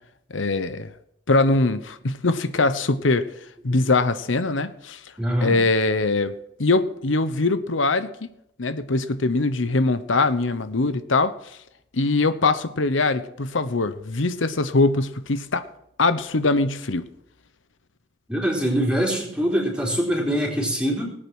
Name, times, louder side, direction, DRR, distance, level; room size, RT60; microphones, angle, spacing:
voice 1, 0.3-0.9 1.3-3.3 3.6-5.0 5.4-6.3 6.6-8.3 8.6-11.6 11.9-15.6 16.0-17.1, left 3 dB, 85° left, 11 dB, 1.0 m, -22 dB
voice 2, 5.2-5.6 18.3-21.1, equal, 5° right, -1 dB, 4.0 m, -23 dB
19.5 x 8.7 x 6.2 m, 0.74 s
head